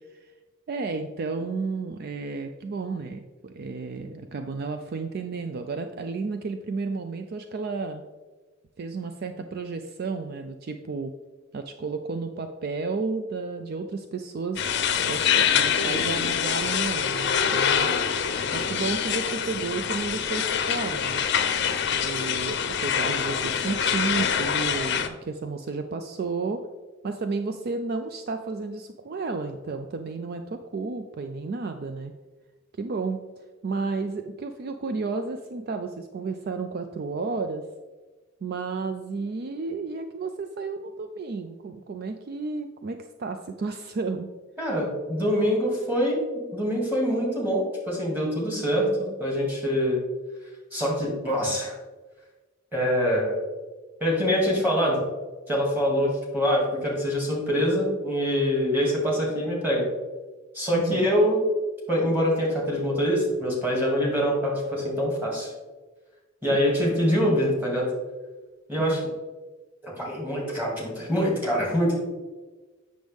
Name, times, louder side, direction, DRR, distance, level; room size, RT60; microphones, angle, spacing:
voice 1, 0.7-8.0 8.8-11.1 11.5-17.9 18.5-21.2 22.0-26.6 27.0-32.1 32.8-33.2 33.6-37.7 38.4-44.3 60.7-61.1 66.5-66.7 68.8-69.0, right 4 dB, 50° right, 7 dB, 0.4 m, -32 dB
sound 1, 14.6-25.1, left 7 dB, 55° left, 0.6 m, -25 dB
voice 2, 44.6-48.9 49.2-50.0 50.7-51.7 52.7-53.4 54.0-55.0 55.5-59.8 60.5-61.4 61.9-65.5 66.4-67.9 68.7-69.0 69.8-71.9, equal, 10° right, -3 dB, 2.2 m, -24 dB
7.7 x 6.3 x 3.5 m, 1.3 s
head